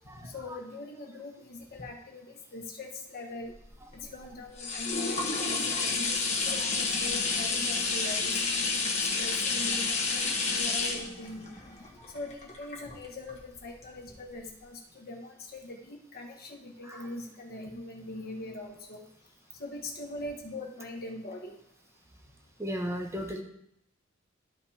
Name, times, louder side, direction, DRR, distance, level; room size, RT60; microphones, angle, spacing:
voice 1, 0.2-3.5 4.0-8.9 9.2-11.5 12.1-19.0 19.6-21.6, left 2 dB, 50° left, -1 dB, 1.3 m, -42 dB
sound 1, 3.6-13.3 13.8-13.9, left 4 dB, 35° left, 1.1 m, -30 dB
voice 2, 22.6-23.4, equal, 15° right, 2 dB, 1.0 m, -34 dB
13.0 x 5.2 x 2.8 m, 0.73 s
head